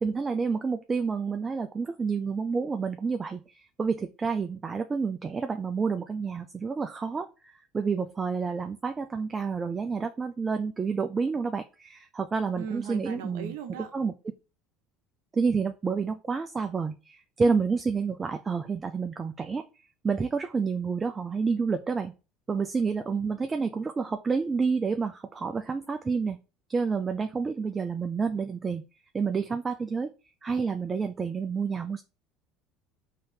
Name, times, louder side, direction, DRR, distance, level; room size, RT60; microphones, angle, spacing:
voice 1, 0.0-13.5 13.9-14.1 15.3-19.6 20.0-22.1 22.5-26.4 26.7-28.8 29.1-30.1 30.4-32.0, right 5 dB, 25° right, 0.4 m, -29 dB
voice 2, 12.5-13.9, right 7 dB, 65° right, 0.8 m, -38 dB
3.8 x 2.8 x 3.3 m
figure-of-eight pair, 65°, 0 cm